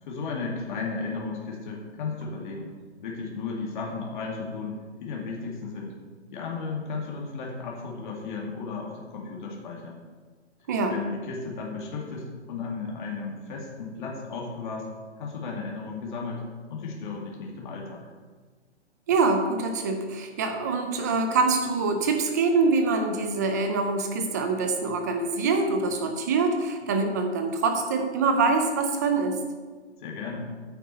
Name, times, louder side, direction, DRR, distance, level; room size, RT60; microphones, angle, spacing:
voice 1, 0.0-2.7 3.0-5.9 6.3-10.0 10.9-14.9 15.2-16.4 16.7-18.0 30.0-30.5, left 4 dB, 45° left, -2 dB, 2.4 m, -34 dB
voice 2, 19.1-29.4, right 4 dB, 15° right, 5 dB, 0.5 m, -25 dB
9.5 x 7.8 x 4.3 m, 1.4 s
hypercardioid pair, 155°, 35 cm